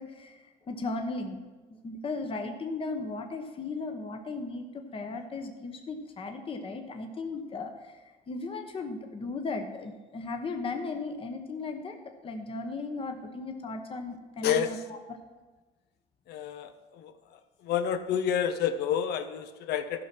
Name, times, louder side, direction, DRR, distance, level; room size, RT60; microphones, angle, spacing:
voice 1, 0.0-1.4 1.8-8.0 8.3-12.0 12.2-15.0, left 3 dB, 35° left, 5 dB, 1.1 m, -36 dB
voice 2, 14.4-14.8 16.3-17.1 17.6-20.0, left 8 dB, 75° left, 10 dB, 0.9 m, -29 dB
13.5 x 5.8 x 6.1 m, 1.3 s
cardioid pair, 110°, 17 cm